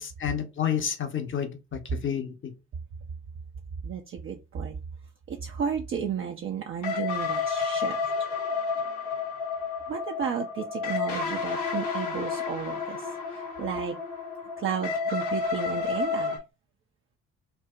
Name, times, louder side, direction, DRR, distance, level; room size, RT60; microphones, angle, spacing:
voice 1, 0.0-2.5, left 8 dB, 35° left, 0.8 m, -30 dB
voice 2, 3.8-4.8 5.3-8.0 9.9-14.0 14.6-16.4, right 7 dB, 35° right, 0.5 m, -33 dB
sound 1, 6.8-16.4, left 5 dB, 55° left, 1.1 m, -31 dB
4.5 x 2.0 x 2.4 m
hypercardioid pair, 45°, 36 cm